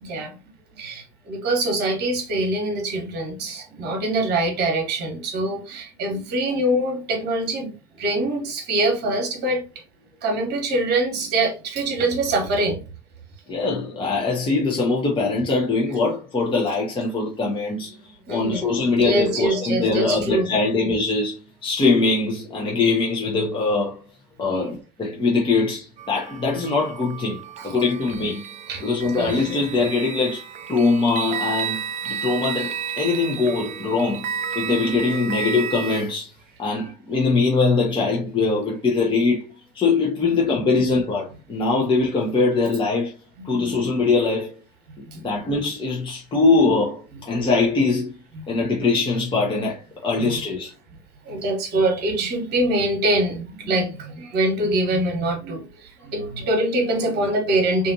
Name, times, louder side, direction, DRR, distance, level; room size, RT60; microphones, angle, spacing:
voice 1, 0.0-0.3 0.7-9.6 10.2-12.8 18.3-20.6 24.5-24.7 27.6-27.7 28.7-28.9 29.2-29.4 40.2-40.6 43.4-43.7 44.9-45.2 48.3-48.4 50.2-50.4 51.2-57.9, right 1 dB, 50° right, 1.0 m, -24 dB
voice 2, 13.5-18.0 18.3-24.0 24.4-27.4 27.6-28.4 28.8-30.4 30.7-31.8 32.1-34.2 34.5-36.3 36.6-39.4 39.7-43.1 43.4-44.6 45.2-48.1 48.5-50.7, left 3 dB, 25° left, 0.8 m, -22 dB
sound 1, 26.0-36.0, right 7 dB, 35° right, 0.4 m, -32 dB
2.5 x 2.5 x 2.7 m
hypercardioid pair, 65°, 21 cm